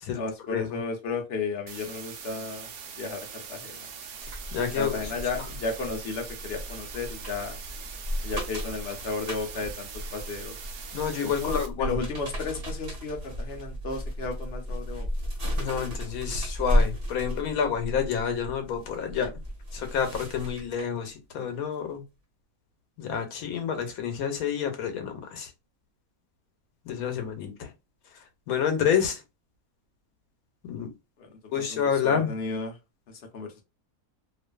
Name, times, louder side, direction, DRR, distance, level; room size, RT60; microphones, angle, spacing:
voice 1, 0.1-3.9 4.8-7.6 8.2-10.6 11.2-15.1 31.2-32.7 33.1-33.6, left 4 dB, 60° left, 0.7 m, -34 dB
sound 1, 1.7-11.7, right 7 dB, 85° right, 1.1 m, -42 dB
sound 2, 4.2-21.1 21.5-21.7, equal, 50° right, 1.0 m, -33 dB
voice 2, 4.5-5.0 10.9-12.0 15.6-19.3 19.7-22.0 23.0-25.5 26.8-27.7 28.1-29.2 30.6-30.9 31.5-32.4, left 7 dB, 85° left, 1.1 m, -29 dB
2.5 x 2.4 x 2.2 m
omnidirectional pair, 1.5 m